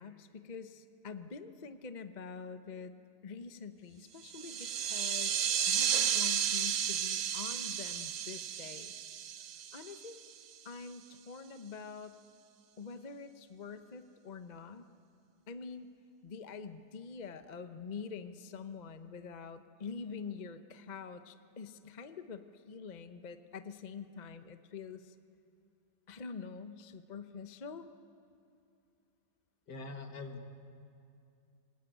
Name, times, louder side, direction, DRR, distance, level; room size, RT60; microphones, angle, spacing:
voice 1, 0.0-2.9 3.2-8.9 9.7-10.2 10.6-12.2 12.8-14.9 15.5-15.9 16.2-25.1 26.1-27.9, left 5 dB, 35° left, 9 dB, 0.7 m, -46 dB
sound 1, 4.2-10.3, right 9 dB, 55° right, 0.9 m, -33 dB
voice 2, 29.7-30.6, left 2 dB, 60° left, 5 dB, 2.4 m, -44 dB
26.5 x 20.5 x 9.2 m, 2.6 s
omnidirectional pair, 2.0 m